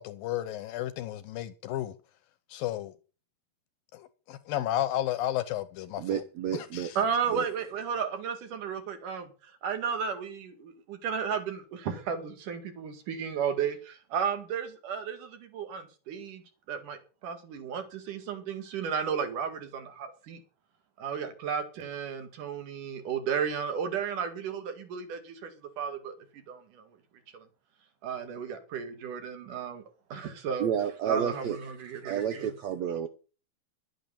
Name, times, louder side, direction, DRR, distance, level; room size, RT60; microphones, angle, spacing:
voice 1, 0.0-2.0 2.5-2.9 3.9-6.2 6.5-7.0, left 13 dB, 75° left, 2.2 m, -33 dB
voice 2, 6.0-6.9 7.3-7.5 30.6-31.6 31.8-33.1, right 8 dB, 85° right, 1.5 m, -31 dB
voice 3, 7.0-16.4 16.7-20.4 21.0-25.5 25.8-27.0 27.3-27.5 28.0-29.8 30.1-30.7 31.1-32.5, right 7 dB, 60° right, 3.2 m, -33 dB
12.0 x 9.1 x 6.9 m
omnidirectional pair, 4.6 m